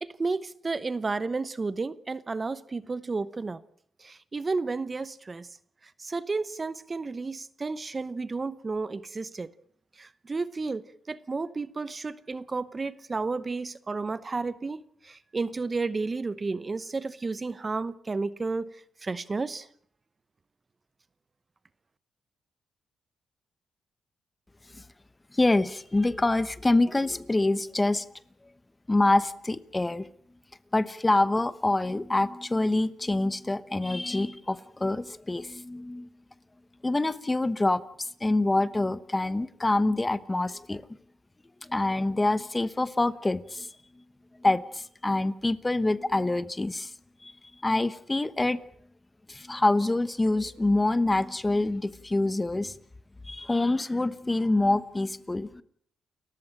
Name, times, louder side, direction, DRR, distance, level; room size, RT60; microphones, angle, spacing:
voice 1, 0.0-3.6 4.0-5.5 5.8-9.5 10.0-18.7 19.0-19.7, right 3 dB, 30° right, 0.9 m, -32 dB
voice 2, 25.3-28.0 28.9-30.0 30.7-36.1 36.8-40.8 41.7-43.7 44.4-46.9 47.2-47.3 47.6-48.6 49.3-52.7 53.2-55.6, left 2 dB, 15° left, 1.0 m, -26 dB
29.5 x 14.5 x 8.9 m
cardioid pair, 115°, 0 cm